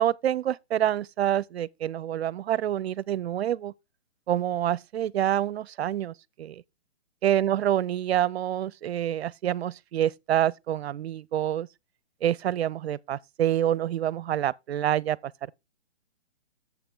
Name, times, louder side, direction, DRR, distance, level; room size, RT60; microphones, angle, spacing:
voice 1, 0.0-3.7 4.3-6.6 7.2-11.7 12.2-15.3, right 11 dB, 65° right, 0.5 m, -27 dB
8.0 x 7.3 x 3.7 m
hypercardioid pair, 145°, 34 cm